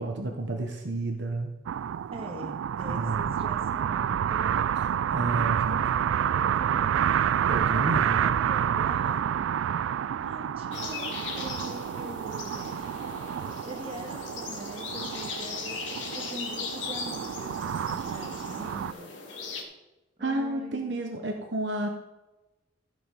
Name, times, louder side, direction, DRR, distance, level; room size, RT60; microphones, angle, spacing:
voice 1, 0.0-1.5 2.9-3.3 5.1-5.9 7.5-8.4 20.2-21.9, right 2 dB, 65° right, 3 dB, 1.1 m, -31 dB
sound 1, 1.7-18.9, right 9 dB, 90° right, 0.3 m, -29 dB
voice 2, 2.1-4.7 6.3-7.2 7.4-9.5 10.2-12.8 13.6-19.1 20.2-20.9, right 1 dB, 30° right, 1 dB, 1.8 m, -43 dB
sound 2, 10.7-19.6, left 4 dB, 75° left, 1.8 m, -38 dB
15.0 x 5.1 x 5.4 m, 1.0 s
head